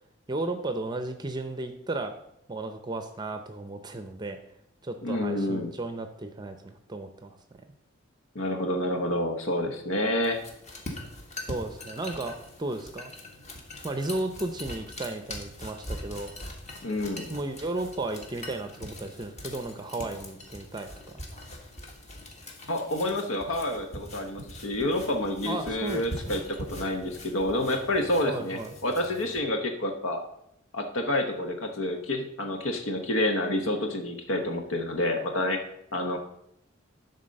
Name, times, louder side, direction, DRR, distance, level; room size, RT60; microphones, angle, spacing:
voice 1, 0.3-2.1 2.5-4.4 4.8-7.4 11.4-13.1 13.8-16.3 17.3-21.2 25.4-26.4 28.2-28.8, right 2 dB, 20° right, 7 dB, 0.5 m, -34 dB
voice 2, 5.0-5.7 8.3-10.4 16.8-17.3 22.7-30.2 30.7-35.6 35.9-36.2, left 1 dB, 80° left, 4 dB, 1.1 m, -28 dB
sound 1, 10.2-29.4, left 1 dB, 35° left, 1.5 m, -42 dB
11.0 x 4.0 x 6.4 m, 0.78 s
head